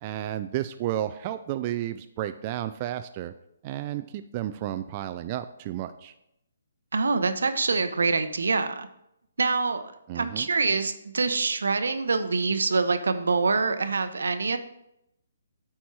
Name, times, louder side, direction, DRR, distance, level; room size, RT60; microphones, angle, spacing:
voice 1, 0.0-3.3 3.6-6.1 10.1-10.5, right 13 dB, 30° right, 9 dB, 0.3 m, -32 dB
voice 2, 6.9-8.9 9.4-9.8 10.1-14.6, right 4 dB, 80° right, 10 dB, 0.8 m, -25 dB
8.5 x 4.4 x 4.7 m, 0.81 s
hypercardioid pair, 155°, 0 cm